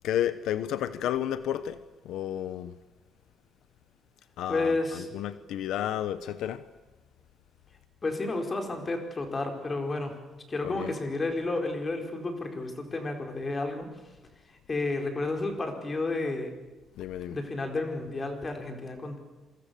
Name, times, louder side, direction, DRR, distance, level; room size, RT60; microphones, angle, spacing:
voice 1, 0.0-1.8 2.0-2.7 4.4-6.7 10.6-10.9 17.0-17.4, left 11 dB, 80° left, 1.1 m, -31 dB
voice 2, 4.5-5.1 8.0-10.2 10.5-13.9 14.5-16.5 17.3-19.2, left 2 dB, 25° left, 4.7 m, -31 dB
27.5 x 24.5 x 7.0 m
cardioid pair, 155°, 0 cm